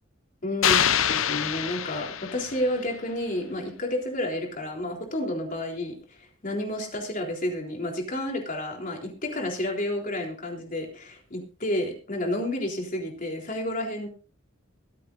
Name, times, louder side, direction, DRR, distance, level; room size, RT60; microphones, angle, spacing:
voice 1, 0.4-14.1, left 1 dB, 45° left, 1 dB, 3.7 m, -31 dB
sound 1, 0.6-2.8, left 9 dB, 90° left, 0.7 m, -25 dB
24.0 x 8.3 x 2.6 m, 0.33 s
head